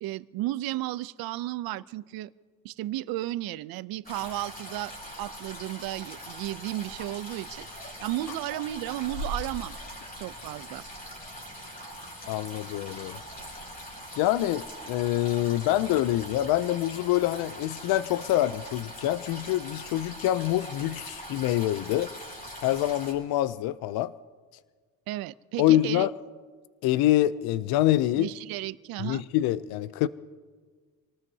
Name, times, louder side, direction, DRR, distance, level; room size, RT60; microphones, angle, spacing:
voice 1, 0.0-2.3 2.6-9.8 10.2-10.8 25.1-26.1 28.2-29.2, right 15 dB, 75° right, 0.6 m, -34 dB
sound 1, 4.0-23.1, equal, 25° left, 4.9 m, -41 dB
voice 2, 12.3-13.2 14.1-22.1 22.6-24.1 25.6-26.1 26.8-28.3 29.0-30.1, left 14 dB, 80° left, 0.5 m, -25 dB
27.0 x 19.0 x 2.8 m
cardioid pair, 140°, 37 cm